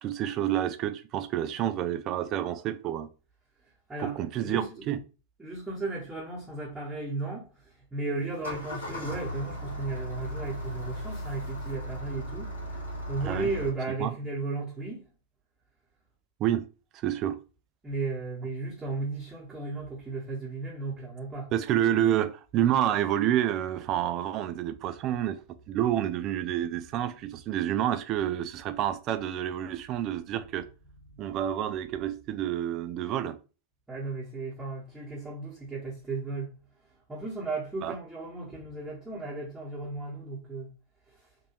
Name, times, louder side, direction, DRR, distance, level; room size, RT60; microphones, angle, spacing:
voice 1, 0.0-3.1 4.0-5.0 13.2-13.5 14.0-14.1 16.4-16.7 17.0-17.4 21.5-25.4 25.7-30.7 31.2-33.4 37.8-38.0, right 11 dB, 35° right, 0.3 m, -28 dB
voice 2, 3.9-4.7 5.4-7.6 7.9-15.0 17.8-21.5 31.1-31.2 33.9-36.5 37.1-40.7, right 3 dB, 10° right, 1.1 m, -35 dB
sound 1, 8.2-12.4, left 2 dB, 50° left, 1.0 m, -53 dB
Engine starting, 8.3-13.7, equal, 80° left, 1.3 m, -36 dB
3.0 x 2.6 x 2.9 m
figure-of-eight pair, 90°, 0 cm